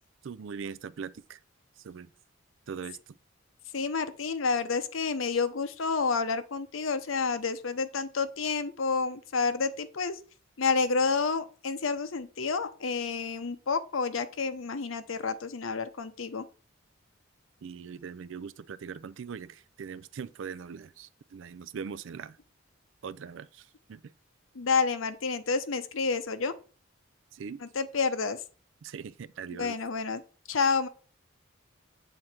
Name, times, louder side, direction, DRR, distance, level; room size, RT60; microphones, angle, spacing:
voice 1, 0.2-1.4 1.8-2.1 2.7-3.0 17.6-22.4 23.0-24.1 27.3-27.6 28.8-29.8, right 6 dB, 70° right, 0.4 m, -41 dB
voice 2, 3.7-10.2 10.6-16.4 24.5-26.5 27.7-28.4 29.6-30.2 30.5-30.9, left 4 dB, 90° left, 0.7 m, -29 dB
7.8 x 3.7 x 4.4 m
head